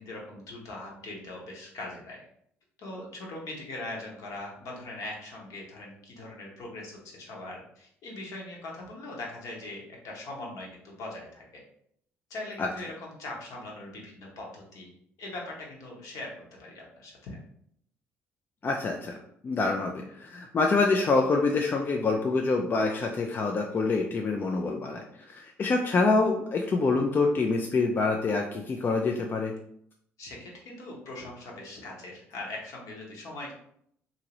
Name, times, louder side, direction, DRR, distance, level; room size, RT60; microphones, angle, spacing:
voice 1, 0.0-2.2 2.8-11.6 12.3-14.9 15.2-17.4 30.2-33.5, left 2 dB, 60° left, -2 dB, 1.0 m, -41 dB
voice 2, 18.6-19.1 19.4-29.5, left 3 dB, 30° left, 2 dB, 0.4 m, -26 dB
2.8 x 2.6 x 2.9 m, 0.70 s
hypercardioid pair, 50°, 7 cm